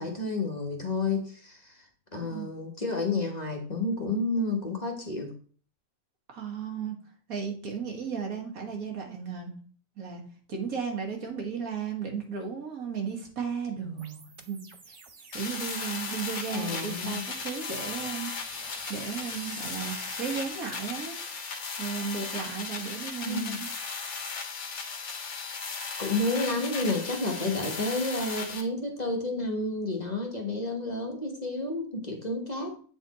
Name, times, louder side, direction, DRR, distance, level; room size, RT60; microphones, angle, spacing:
voice 1, 0.0-5.3 16.5-17.2 23.2-23.6 26.0-32.8, left 2 dB, 30° left, 2 dB, 1.2 m, -30 dB
voice 2, 6.3-6.9 7.3-9.5 10.0-10.2 10.5-14.6 14.9-15.0 15.3-18.3 18.9-21.2 21.8-23.7, right 6 dB, 80° right, 2 dB, 2.0 m, -35 dB
sound 1, 14.0-21.0, right 4 dB, 45° right, 0.4 m, -49 dB
sound 2, 15.3-28.6, left 5 dB, 55° left, 1.3 m, -36 dB
8.2 x 4.3 x 4.1 m, 0.43 s
omnidirectional pair, 1.5 m